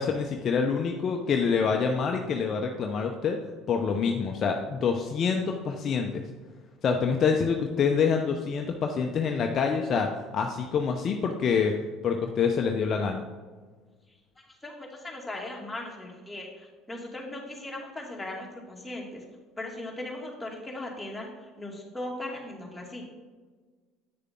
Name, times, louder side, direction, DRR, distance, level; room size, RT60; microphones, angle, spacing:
voice 1, 0.0-3.4 3.7-6.2 6.8-10.1 10.3-11.7 12.0-13.2, left 6 dB, 45° left, 3 dB, 0.7 m, -26 dB
voice 2, 14.5-19.3 19.6-23.0, left 1 dB, 10° left, -2 dB, 2.4 m, -38 dB
8.6 x 6.6 x 3.7 m, 1.4 s
hypercardioid pair, 70°, 0 cm